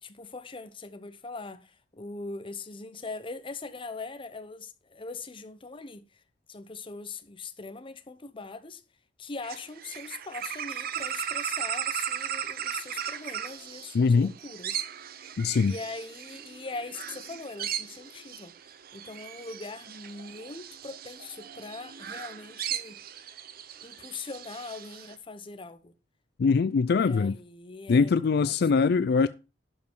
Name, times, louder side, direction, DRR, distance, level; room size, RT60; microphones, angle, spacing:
voice 1, 0.0-6.0 6.5-8.8 9.2-14.8 15.6-18.6 18.9-23.0 23.8-25.9 27.0-28.8, left 3 dB, 30° left, 0.8 m, -41 dB
sound 1, 9.4-25.2, right 9 dB, 55° right, 0.7 m, -37 dB
voice 2, 13.9-14.3 15.4-15.7 26.4-27.3 27.9-29.3, left 5 dB, 60° left, 0.4 m, -22 dB
11.5 x 5.3 x 4.5 m
head